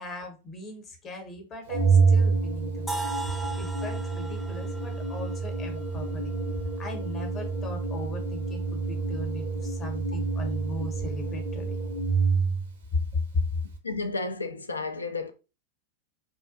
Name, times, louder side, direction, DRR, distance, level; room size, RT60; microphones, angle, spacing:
voice 1, 0.0-6.4 6.8-11.8 12.9-13.6, left 3 dB, 25° left, 0.8 m, -36 dB
Organ, 1.7-12.7, right 4 dB, 65° right, 0.5 m, -27 dB
sound 1, 2.9-6.8, right 3 dB, ahead, 0.3 m, -38 dB
voice 2, 13.8-15.3, left 3 dB, 75° left, 0.3 m, -32 dB
2.3 x 2.1 x 2.5 m
figure-of-eight pair, 90°, 0 cm